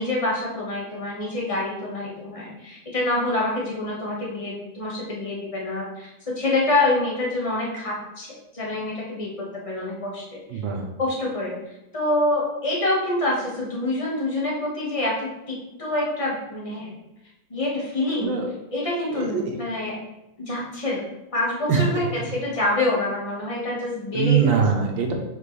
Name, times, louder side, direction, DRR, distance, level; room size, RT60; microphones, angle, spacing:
voice 1, 0.0-9.3 9.6-10.4 11.0-11.6 11.9-16.9 17.5-18.4 18.7-20.0 20.4-21.0 21.3-24.5, left 2 dB, 20° left, -4 dB, 1.5 m, -26 dB
voice 2, 10.5-10.8 18.2-18.4 19.1-19.4 21.7-21.8 22.2-22.3 24.1-25.1, right 7 dB, 85° right, 2 dB, 1.7 m, -22 dB
7.1 x 4.6 x 3.3 m, 0.92 s
omnidirectional pair, 2.1 m